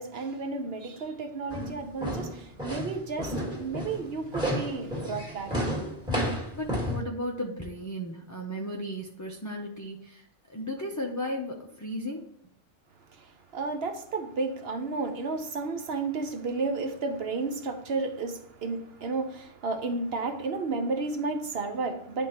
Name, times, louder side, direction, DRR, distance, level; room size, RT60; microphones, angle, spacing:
voice 1, 0.0-5.8 13.2-22.3, right 3 dB, 60° right, 1.0 m, -32 dB
sound 1, 1.5-7.0, equal, 5° right, 1.5 m, -31 dB
voice 2, 6.5-12.3, equal, 25° left, 0.4 m, -35 dB
10.5 x 3.6 x 2.9 m
omnidirectional pair, 1.3 m